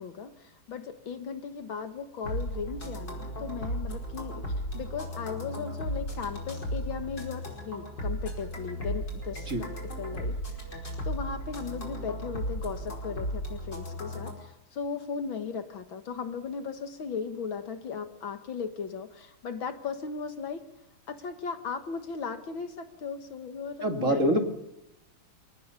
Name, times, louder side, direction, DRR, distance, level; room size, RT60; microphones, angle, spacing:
voice 1, 0.0-4.4 4.7-10.4 11.0-20.7 21.1-24.4, left 6 dB, 70° left, 8 dB, 2.3 m, -37 dB
sound 1, 2.2-14.3, equal, 55° left, 5.7 m, -35 dB
voice 2, 23.8-24.4, right 1 dB, 40° right, 4 dB, 2.5 m, -25 dB
28.0 x 18.5 x 7.0 m, 0.87 s
omnidirectional pair, 2.3 m